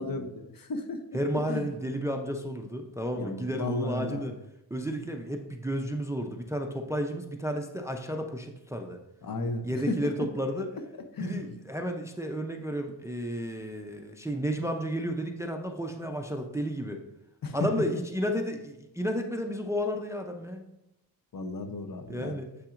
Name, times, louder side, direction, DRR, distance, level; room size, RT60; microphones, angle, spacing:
voice 1, 0.0-1.0 1.3-1.7 3.1-4.3 9.2-10.3 11.1-11.4 17.4-17.6 21.3-22.3, left 2 dB, 55° left, 7 dB, 0.8 m, -34 dB
voice 2, 1.1-4.3 4.7-9.0 9.6-10.7 11.2-17.0 17.5-20.6 22.1-22.5, equal, 5° right, 4 dB, 0.5 m, -32 dB
7.7 x 5.8 x 2.5 m, 0.88 s
wide cardioid pair, 95°, 42 cm